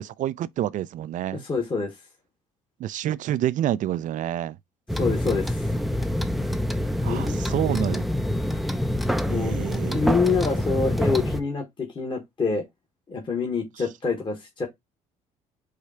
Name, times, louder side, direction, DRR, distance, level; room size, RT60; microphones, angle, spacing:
voice 1, 0.0-1.4 2.8-4.6 7.0-8.1 9.3-10.1 13.8-13.9, right 12 dB, 55° right, 0.4 m, -28 dB
voice 2, 1.4-1.9 5.0-5.7 7.0-7.5 9.2-9.6 9.9-12.6 13.1-14.7, left 4 dB, 30° left, 1.4 m, -26 dB
sound 1, 4.9-11.4, equal, ahead, 0.5 m, -26 dB
4.9 x 2.3 x 4.2 m
supercardioid pair, 70°, 16 cm